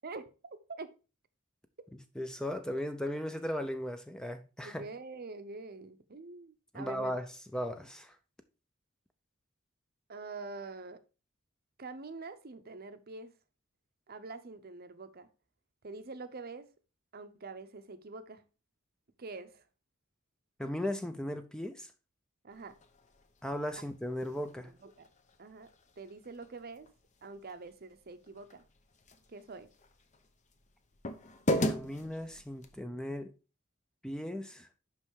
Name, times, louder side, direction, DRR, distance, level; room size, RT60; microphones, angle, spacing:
voice 1, 0.0-0.9 4.6-7.2 10.1-11.0 11.8-13.4 14.1-15.3 15.8-16.7 17.1-18.4 19.2-19.6 22.4-22.8 23.8-23.9 24.6-25.1 25.4-25.7 26.0-26.9 27.2-28.6 29.3-29.7, right 3 dB, 50° right, 0.7 m, -45 dB
voice 2, 2.2-4.9 6.7-7.2 7.5-8.1 20.6-21.9 23.4-24.7 31.6-33.3 34.0-34.7, left 1 dB, 5° left, 0.5 m, -37 dB
sound 1, 22.5-32.8, equal, 35° left, 0.8 m, -40 dB
5.6 x 5.5 x 4.6 m
head